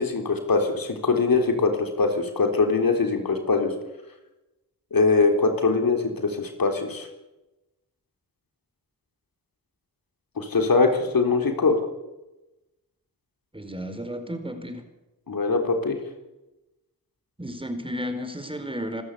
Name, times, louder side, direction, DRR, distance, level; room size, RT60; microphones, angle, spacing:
voice 1, 0.0-3.7 4.9-7.1 10.4-11.8 15.3-16.0, left 4 dB, 75° left, 5 dB, 3.8 m, -22 dB
voice 2, 13.5-14.8 17.4-19.0, equal, 15° right, 7 dB, 4.5 m, -33 dB
27.0 x 13.0 x 8.4 m, 1.0 s
cardioid pair, 55°, 35 cm